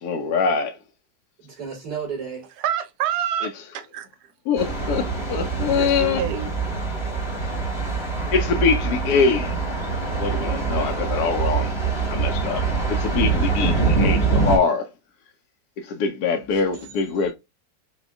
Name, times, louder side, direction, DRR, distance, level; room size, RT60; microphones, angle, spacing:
voice 1, 0.0-0.8 4.5-6.2 8.3-9.5 10.2-11.7 12.1-14.9 15.8-17.3, left 5 dB, 70° left, 1.1 m, -23 dB
voice 2, 1.4-2.5 16.5-17.3, right 6 dB, 55° right, 2.8 m, -35 dB
voice 3, 2.6-4.1 5.8-6.5, right 10 dB, 70° right, 1.0 m, -27 dB
Thunder, 4.6-14.6, right 4 dB, 20° left, 1.0 m, -24 dB
6.0 x 2.3 x 2.3 m
omnidirectional pair, 1.9 m